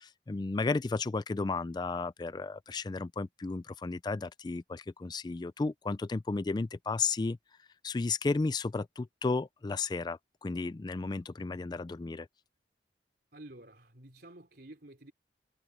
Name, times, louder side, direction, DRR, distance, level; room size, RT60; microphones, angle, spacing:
voice 1, 0.0-7.4 7.8-12.3, left 3 dB, 25° left, 0.3 m, -33 dB
voice 2, 13.3-15.1, right 1 dB, 55° right, 4.0 m, -51 dB
head